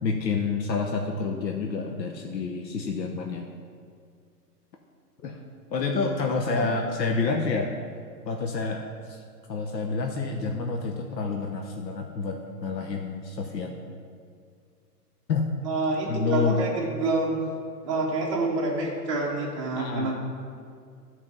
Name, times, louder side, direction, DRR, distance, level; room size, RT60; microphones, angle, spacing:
voice 1, 0.0-3.5 5.2-5.4 5.7-7.7 8.2-9.2 9.5-13.7 15.3-15.5 16.1-16.6 19.8-20.1, left 4 dB, 85° left, 2 dB, 1.1 m, -28 dB
voice 2, 15.6-17.3 17.8-20.1, right 2 dB, 20° right, -4 dB, 0.9 m, -27 dB
11.0 x 4.7 x 5.4 m, 2.2 s
hypercardioid pair, 175°, 49 cm